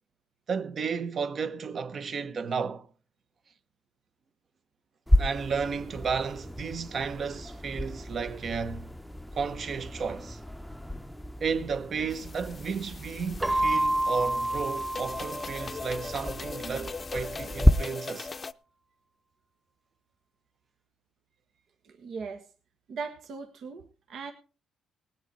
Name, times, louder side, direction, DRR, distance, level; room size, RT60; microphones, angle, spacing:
voice 1, 0.5-2.9 5.2-8.9 9.3-10.4 11.4-18.3, right 5 dB, 50° right, 1.1 m, -33 dB
sound 1, 5.1-17.7, left 1 dB, ahead, 0.7 m, -31 dB
sound 2, 12.1-18.5, left 4 dB, 35° left, 0.6 m, -40 dB
Keyboard (musical), 13.4-16.1, right 1 dB, 20° right, 1.6 m, -29 dB
voice 2, 21.8-22.4 22.9-24.3, right 5 dB, 70° right, 1.4 m, -39 dB
19.0 x 8.0 x 4.3 m
cardioid pair, 90°, 0 cm